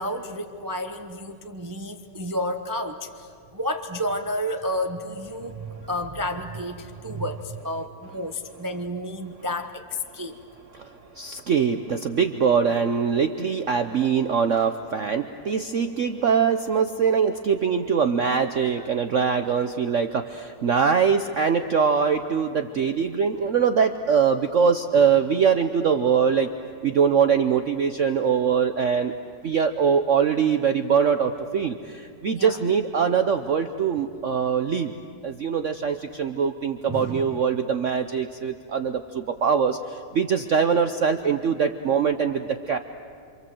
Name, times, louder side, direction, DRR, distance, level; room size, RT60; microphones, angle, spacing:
voice 1, 0.0-10.3 32.3-32.6 36.9-37.4, equal, 15° right, 5 dB, 0.8 m, -31 dB
voice 2, 10.7-26.5 26.8-29.1 29.4-34.9 35.2-42.8, right 6 dB, 55° right, 8 dB, 1.0 m, -23 dB
27.5 x 26.5 x 7.8 m, 2.3 s
omnidirectional pair, 1.9 m